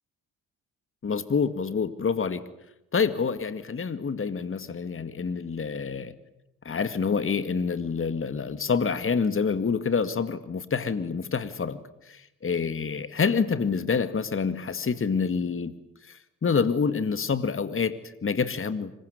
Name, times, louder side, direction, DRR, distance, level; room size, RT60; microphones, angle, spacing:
voice 1, 1.0-2.4 2.9-6.1 6.6-11.8 12.1-15.7 16.0-18.9, left 5 dB, 35° left, 13 dB, 2.1 m, -27 dB
26.0 x 23.0 x 9.6 m, 0.85 s
hypercardioid pair, 50°, 39 cm